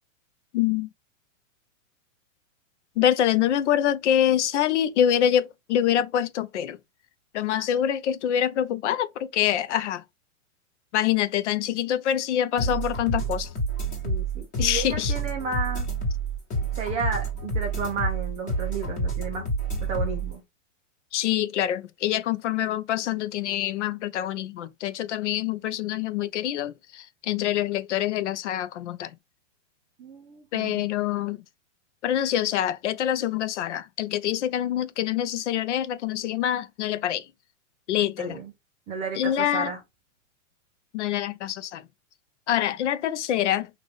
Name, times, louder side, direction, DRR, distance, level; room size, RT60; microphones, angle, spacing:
voice 1, 0.5-0.9 3.0-6.8 7.3-10.0 10.9-13.5 14.6-15.1 21.1-29.1 30.5-31.4 32.0-37.3 37.9-38.4 39.2-39.7 40.9-41.8 42.5-43.7, left 11 dB, 60° left, 0.6 m, -25 dB
sound 1, 12.6-20.3, right 3 dB, 20° left, 1.3 m, -28 dB
voice 2, 14.0-15.9 16.7-19.4 19.8-20.4 30.0-30.8 38.2-38.5 38.9-39.8, right 4 dB, 15° right, 0.5 m, -32 dB
3.9 x 2.5 x 3.3 m
hypercardioid pair, 150°, 39 cm